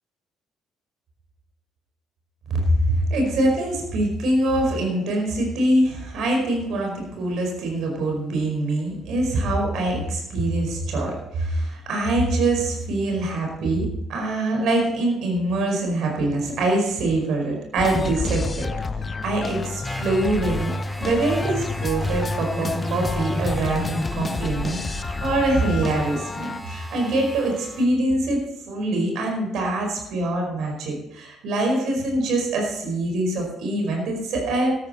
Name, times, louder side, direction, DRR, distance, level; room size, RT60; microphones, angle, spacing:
voice 1, 2.5-18.7 19.2-20.7 21.0-34.8, right 2 dB, 60° right, 1 dB, 4.8 m, -24 dB
sound 1, 17.8-26.6, left 4 dB, 30° left, 0.8 m, -30 dB
sound 2, 19.8-27.9, equal, ahead, 2.5 m, -33 dB
13.5 x 12.5 x 4.3 m, 0.86 s
figure-of-eight pair, 50°, 0 cm